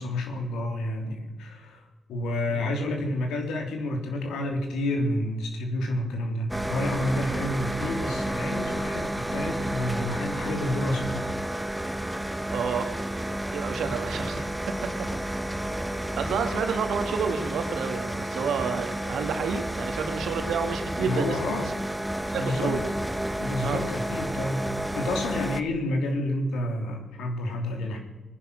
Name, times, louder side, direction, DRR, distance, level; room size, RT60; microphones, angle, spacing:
voice 1, 0.0-1.8 2.1-11.1 21.0-21.7 22.3-22.8 23.4-28.0, left 1 dB, 85° left, 3 dB, 3.4 m, -29 dB
sound 1, 6.5-25.6, right 1 dB, 5° right, 1.2 m, -31 dB
voice 2, 12.5-13.0 13.5-15.1 16.2-21.7 22.3-22.8 23.6-23.8, right 6 dB, 75° right, 7 dB, 2.0 m, -30 dB
21.5 x 10.0 x 6.5 m, 1.2 s
supercardioid pair, 60°, 0 cm